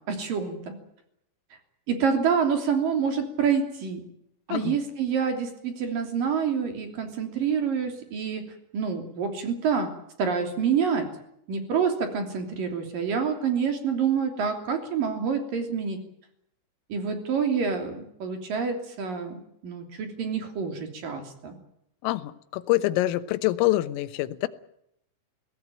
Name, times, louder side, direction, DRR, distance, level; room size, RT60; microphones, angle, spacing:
voice 1, 0.1-0.7 1.9-4.0 4.5-8.4 8.7-9.9 10.2-11.1 11.5-16.0 16.9-21.6, right 6 dB, 45° right, 6 dB, 4.3 m, -27 dB
voice 2, 22.0-24.5, left 17 dB, 80° left, 11 dB, 3.7 m, -25 dB
22.5 x 17.5 x 9.1 m, 0.75 s
omnidirectional pair, 6.0 m